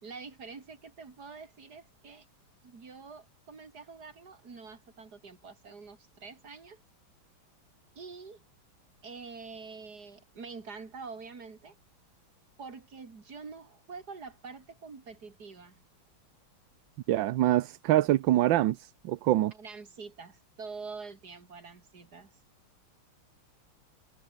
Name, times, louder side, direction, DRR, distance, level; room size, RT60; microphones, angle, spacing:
voice 1, 0.0-2.3 2.6-6.8 7.9-8.4 9.0-11.7 12.6-15.8 19.5-22.4, right 4 dB, 50° right, 3.4 m, -46 dB
voice 2, 17.1-19.5, right 14 dB, 70° right, 1.4 m, -25 dB
omnidirectional pair, 2.3 m